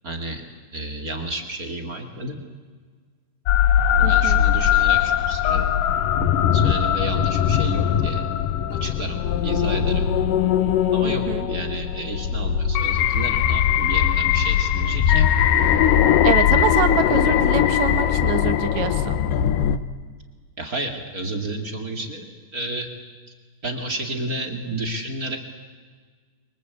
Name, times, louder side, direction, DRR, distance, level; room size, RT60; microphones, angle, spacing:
voice 1, 0.0-0.4 0.7-2.4 4.0-5.7 6.2-8.3 8.7-10.1 10.9-15.3 20.6-22.3 22.5-22.9 23.6-25.4, right 2 dB, 30° right, 4 dB, 1.7 m, -31 dB
sound 1, 3.5-19.8, left 10 dB, 75° left, 2.0 m, -20 dB
voice 2, 4.0-4.4 11.0-11.5 16.2-19.1, right 9 dB, 60° right, 9 dB, 2.1 m, -25 dB
29.5 x 24.0 x 8.2 m, 1.5 s
omnidirectional pair, 5.1 m